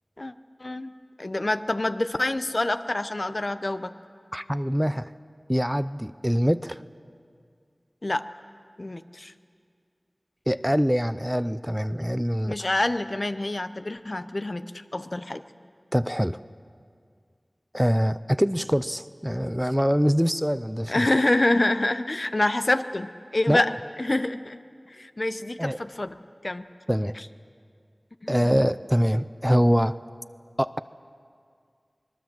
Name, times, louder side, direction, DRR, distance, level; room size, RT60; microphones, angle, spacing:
voice 1, 0.6-0.9 1.2-3.9 8.0-8.3 8.8-9.3 12.5-14.7 14.9-15.4 20.9-24.6 24.9-26.7 27.2-27.3 28.2-28.5, left 2 dB, 55° left, 10 dB, 0.9 m, -26 dB
voice 2, 4.3-5.1 5.5-6.8 10.5-12.6 15.9-16.4 17.7-21.1 23.5-23.6 25.6-25.8 26.9-27.1 28.3-30.0 30.6-30.8, equal, 5° right, 14 dB, 0.5 m, -24 dB
25.5 x 21.0 x 7.6 m, 2.2 s
wide cardioid pair, 45°, 0 cm